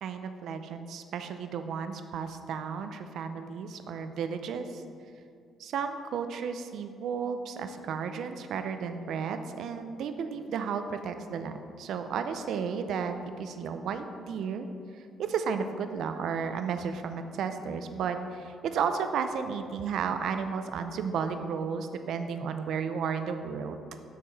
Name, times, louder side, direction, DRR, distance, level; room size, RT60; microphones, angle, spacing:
voice 1, 0.0-4.8 5.6-14.7 15.2-23.8, right 6 dB, 75° right, 8 dB, 0.4 m, -33 dB
6.4 x 5.6 x 4.0 m, 2.4 s
cardioid pair, 90°, 0 cm